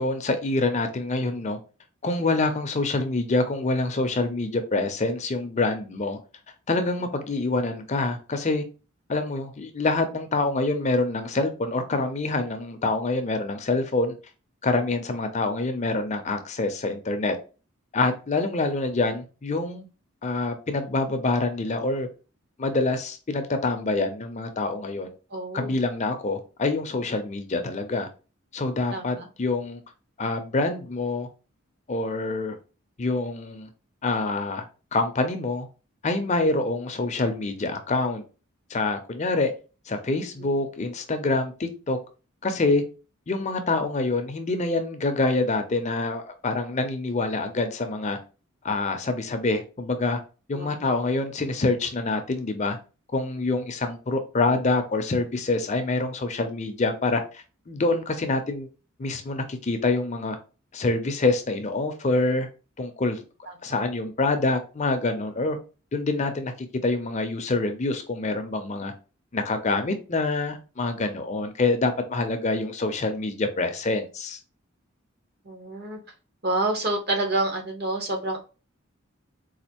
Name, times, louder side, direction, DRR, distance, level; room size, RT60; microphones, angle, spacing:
voice 1, 0.0-1.6 2.0-6.2 6.7-8.6 9.1-14.1 14.6-17.3 17.9-19.9 20.2-22.1 22.6-25.1 25.5-28.1 28.5-29.8 30.2-31.3 31.9-32.6 33.0-33.7 34.0-34.6 34.9-35.7 36.0-38.2 38.7-39.5 39.9-42.0 42.4-42.8 43.3-48.2 48.6-50.2 50.5-52.8 53.1-58.7 59.0-60.4 60.7-62.5 62.8-63.2 63.6-65.6 65.9-68.9 69.3-74.4, left 3 dB, 35° left, 0.5 m, -26 dB
voice 2, 25.3-25.8 28.9-29.3 40.4-40.5 50.5-50.9 75.4-76.0 76.4-78.4, right 2 dB, 50° right, 1.0 m, -28 dB
4.1 x 2.5 x 2.9 m
head